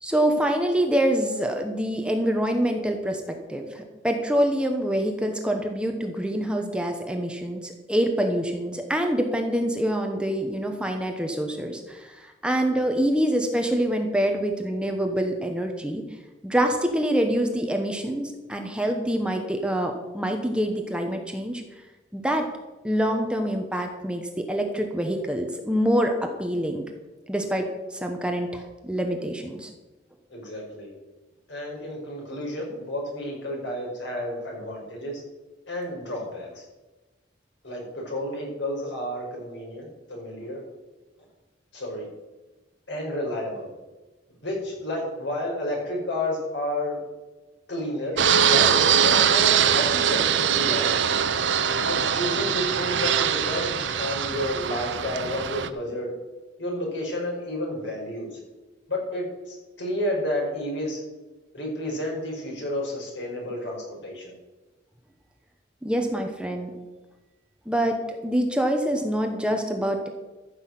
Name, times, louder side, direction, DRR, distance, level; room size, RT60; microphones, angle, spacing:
voice 1, 0.0-16.0 16.4-21.6 22.1-22.5 22.8-26.8 27.3-29.7 65.8-66.7 67.7-70.1, equal, 5° right, 3 dB, 1.1 m, -26 dB
voice 2, 30.3-30.9 31.5-35.2 35.7-36.6 37.6-40.6 41.7-42.1 42.9-43.7 44.4-47.0 47.7-48.2 48.4-51.1 51.9-56.1 56.6-58.4 58.9-61.0 61.5-64.3, left 1 dB, 80° left, -1 dB, 5.1 m, -31 dB
Fixed-wing aircraft airplane, 48.2-55.7, right 8 dB, 80° right, 0.8 m, -22 dB
14.0 x 6.4 x 7.7 m, 1.2 s
head